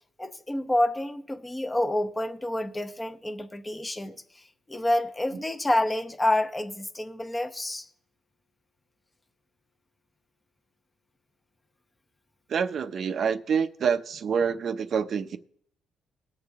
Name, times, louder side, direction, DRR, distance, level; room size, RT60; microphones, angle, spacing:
voice 1, 0.2-7.9, left 1 dB, 15° left, 0.8 m, -28 dB
voice 2, 12.5-15.4, right 6 dB, 60° right, 0.6 m, -27 dB
19.0 x 6.8 x 3.6 m
cardioid pair, 90°, 0 cm